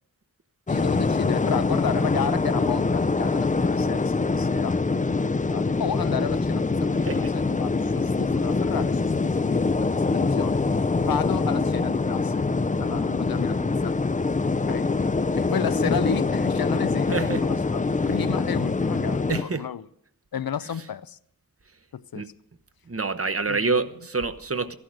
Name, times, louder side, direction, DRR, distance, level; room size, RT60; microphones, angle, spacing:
voice 1, 0.7-4.8 5.1-10.6 11.0-12.5 12.8-14.0 14.7-14.9 15.3-19.9 20.3-21.2 21.9-22.3 23.5-23.8, left 8 dB, 90° left, 0.6 m, -32 dB
sound 1, 0.7-19.4, left 3 dB, 20° left, 0.4 m, -24 dB
voice 2, 7.0-7.3 17.1-17.4 19.3-19.6 22.1-22.3 22.9-24.7, right 4 dB, 40° right, 0.9 m, -27 dB
14.0 x 11.5 x 6.3 m
wide cardioid pair, 80°, 35 cm